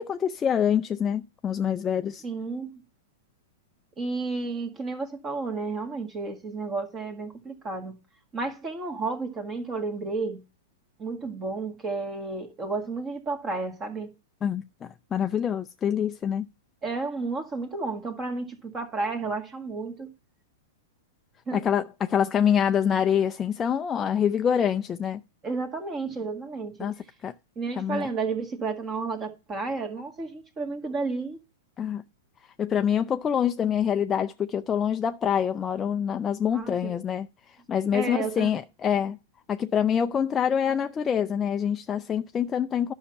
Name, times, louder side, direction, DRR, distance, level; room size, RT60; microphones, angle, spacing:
voice 1, 0.0-2.2 14.4-16.5 21.5-25.2 26.8-26.9 27.2-27.3 27.7-28.1 31.8-32.0 32.6-37.3 37.7-39.2 39.5-42.9, left 8 dB, 20° left, 0.4 m, -25 dB
voice 2, 2.2-2.7 4.0-8.0 8.3-10.4 11.0-14.1 16.8-20.1 21.5-21.6 25.4-26.9 27.6-31.4 36.5-36.9 37.9-38.5, right 3 dB, 25° right, 1.8 m, -32 dB
11.0 x 5.7 x 5.5 m
hypercardioid pair, 125°, 0 cm